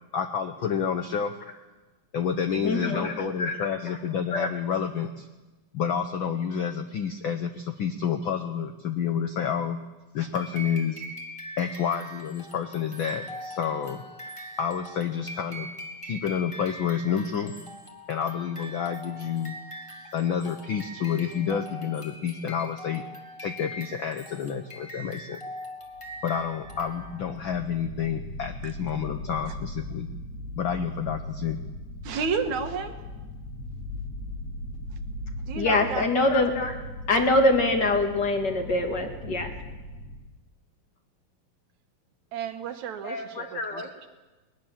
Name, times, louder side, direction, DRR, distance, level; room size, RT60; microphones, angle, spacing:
voice 1, 0.1-1.3 2.1-5.3 5.7-9.8 10.1-11.0 11.6-14.0 14.6-15.7 16.0-17.5 18.1-19.6 20.1-23.0 23.4-25.4 26.2-30.1 30.6-31.6, left 7 dB, 70° left, 7 dB, 1.2 m, -29 dB
voice 2, 2.6-3.7 4.3-4.5 35.5-36.7 37.1-39.5 43.0-44.1, left 2 dB, 40° left, 4 dB, 2.4 m, -25 dB
sound 1, 10.3-27.4, equal, 10° left, 2.0 m, -42 dB
sound 2, 25.9-40.2, left 1 dB, 85° left, 6.6 m, -39 dB
voice 3, 32.0-33.0 35.5-36.1 42.3-43.8, right 6 dB, 75° right, 8 dB, 2.7 m, -31 dB
20.5 x 20.0 x 7.5 m, 1.2 s
omnidirectional pair, 3.4 m